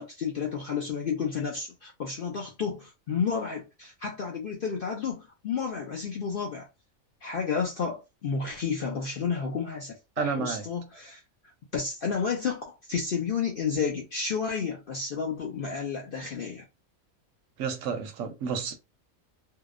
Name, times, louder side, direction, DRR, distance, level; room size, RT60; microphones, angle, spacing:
voice 1, 0.0-6.7 7.2-11.2 11.7-16.6, left 6 dB, 65° left, 0.5 m, -31 dB
voice 2, 10.2-10.7 17.6-18.8, right 6 dB, 70° right, 0.9 m, -31 dB
2.7 x 2.0 x 2.3 m
omnidirectional pair, 1.5 m